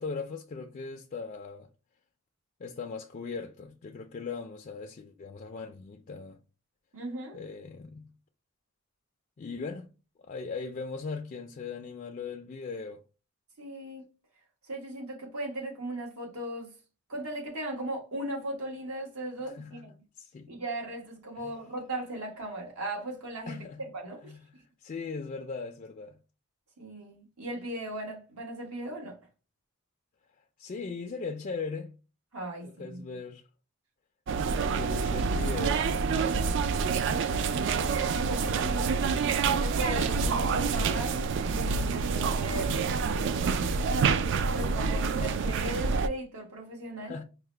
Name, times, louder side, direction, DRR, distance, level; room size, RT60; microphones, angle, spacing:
voice 1, 0.0-1.7 2.6-6.4 7.3-8.1 9.4-9.9 10.2-13.0 19.4-19.9 20.2-20.5 21.4-21.6 23.5-23.8 24.2-24.4 24.8-26.2 30.6-32.0 32.6-33.5 34.5-35.9 47.0-47.2, left 4 dB, 35° left, 0.3 m, -39 dB
voice 2, 6.9-7.4 13.6-14.1 14.6-16.7 17.1-19.9 20.5-24.4 26.8-29.2 32.3-33.0 36.9-39.1 39.6-43.7 44.5-47.2, right 1 dB, 80° right, 1.3 m, -38 dB
sound 1, 34.3-46.1, right 5 dB, 55° right, 0.3 m, -27 dB
4.7 x 2.1 x 3.2 m
head